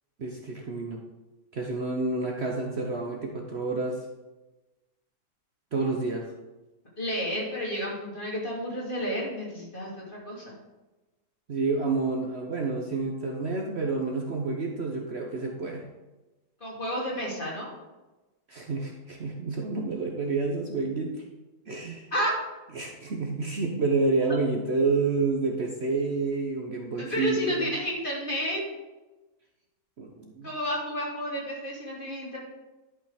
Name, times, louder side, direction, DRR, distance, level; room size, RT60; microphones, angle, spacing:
voice 1, 0.2-1.0 1.5-4.1 5.7-6.3 11.5-15.9 18.5-21.1 21.7-22.1 22.7-27.7 30.0-30.5, right 3 dB, 50° right, 1 dB, 1.1 m, -29 dB
voice 2, 7.0-10.4 16.6-17.7 22.1-22.3 27.0-28.6 30.4-32.4, equal, 35° left, -4 dB, 3.0 m, -31 dB
11.5 x 5.8 x 5.0 m, 1.1 s
omnidirectional pair, 1.6 m